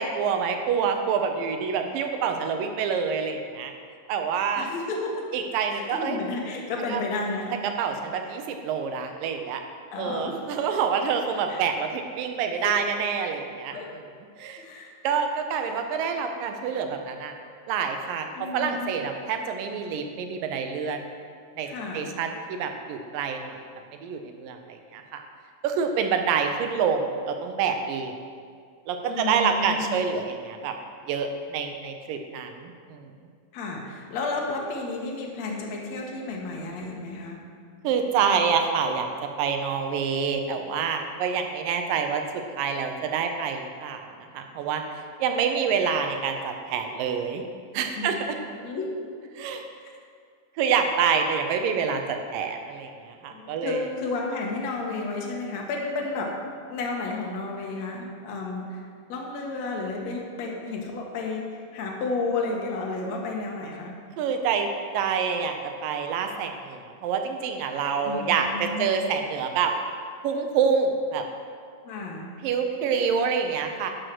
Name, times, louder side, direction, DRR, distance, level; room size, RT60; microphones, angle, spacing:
voice 1, 0.0-3.7 4.1-4.7 5.3-6.2 6.9-7.0 7.6-9.6 10.0-13.8 14.4-14.6 15.0-17.4 17.7-21.0 21.6-21.7 21.9-23.6 24.0-25.2 25.6-28.1 28.9-30.7 31.1-33.1 37.8-39.1 39.4-42.2 42.6-44.8 45.2-47.4 47.7-48.4 49.4-49.6 50.6-53.8 64.2-64.7 64.9-69.7 70.2-71.2 72.4-73.9, right 6 dB, 80° right, 5 dB, 2.4 m, -27 dB
voice 2, 4.6-5.3 5.7-7.6 8.2-8.3 9.9-10.4 11.3-11.6 12.6-12.7 13.7-13.9 14.6-14.9 15.6-15.7 18.3-19.0 21.6-22.2 29.1-30.0 33.5-37.4 48.0-48.1 48.6-49.0 49.8-49.9 53.3-56.4 56.7-58.8 59.1-64.0 68.0-69.0 71.8-72.3, left 3 dB, 60° left, -1 dB, 2.3 m, -32 dB
11.0 x 6.4 x 6.1 m, 2.1 s
omnidirectional pair, 4.0 m